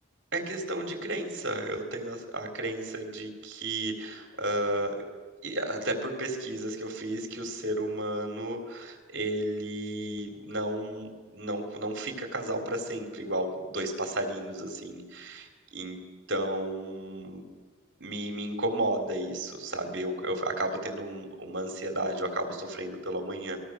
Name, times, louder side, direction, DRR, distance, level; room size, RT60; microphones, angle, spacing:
voice 1, 0.3-5.0 5.4-17.4 18.0-23.6, right 1 dB, 60° right, 3 dB, 3.7 m, -33 dB
26.5 x 20.5 x 6.5 m, 1.5 s
head